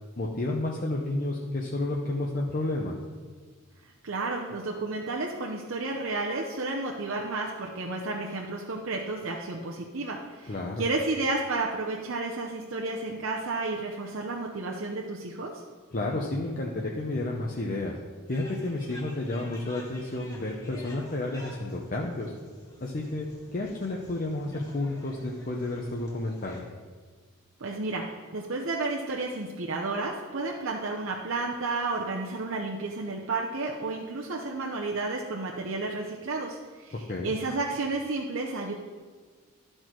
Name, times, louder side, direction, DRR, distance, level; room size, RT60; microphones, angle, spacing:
voice 1, 0.2-3.0 10.5-10.8 15.9-17.9 18.3-22.3 22.8-26.7 37.1-37.3, left 2 dB, 40° left, -1 dB, 0.7 m, -31 dB
voice 2, 4.0-15.6 27.6-28.1 28.3-38.7, right 3 dB, 65° right, -1 dB, 0.7 m, -32 dB
sound 1, 18.3-26.6, left 1 dB, 15° left, 1.5 m, -50 dB
12.5 x 4.4 x 4.5 m, 1.5 s
head